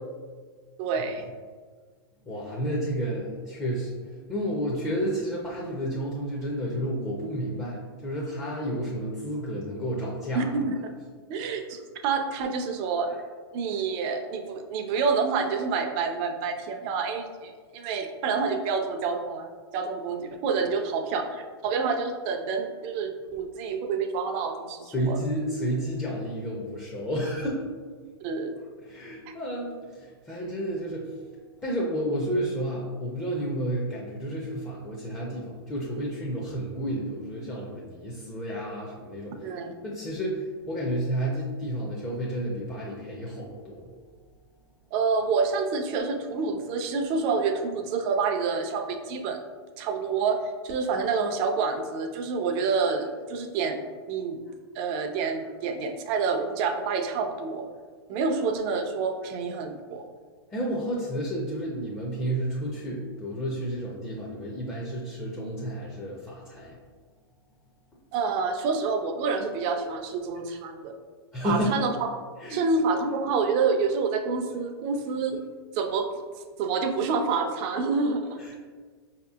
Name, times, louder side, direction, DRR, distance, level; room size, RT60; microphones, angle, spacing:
voice 1, 0.8-1.3 10.3-10.8 11.3-13.1 13.5-25.2 28.2-28.5 39.4-39.7 44.9-49.4 49.8-50.4 50.6-54.4 54.7-57.7 58.1-60.1 68.1-70.9 71.4-71.9 72.5-75.4 75.7-76.1 76.6-78.3, right 5 dB, 40° right, 5 dB, 0.5 m, -28 dB
voice 2, 2.3-3.9 4.3-10.5 24.8-27.6 28.8-31.1 31.6-39.3 39.8-40.4 40.7-43.8 60.5-66.7 71.3-71.9 72.4-72.7 78.4-78.5, equal, 15° left, -4 dB, 0.5 m, -31 dB
4.7 x 2.8 x 2.3 m, 1.5 s
hypercardioid pair, 130°, 14 cm